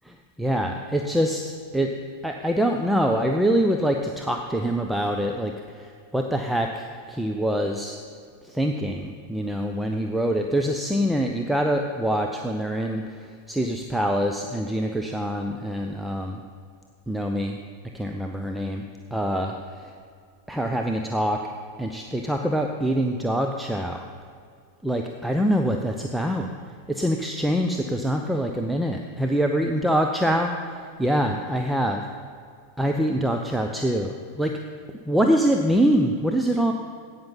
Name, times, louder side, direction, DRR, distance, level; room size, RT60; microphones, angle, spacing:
voice 1, 0.4-1.4 1.7-1.9 2.2-8.0 8.4-16.4 17.1-17.6 17.9-18.8 19.1-19.9 20.5-21.4 21.8-24.0 24.8-26.5 26.9-30.5 31.0-32.0 32.8-34.5 35.1-36.7, equal, 5° right, 3 dB, 0.6 m, -24 dB
16.5 x 5.8 x 5.4 m, 2.2 s
figure-of-eight pair, 90°, 0 cm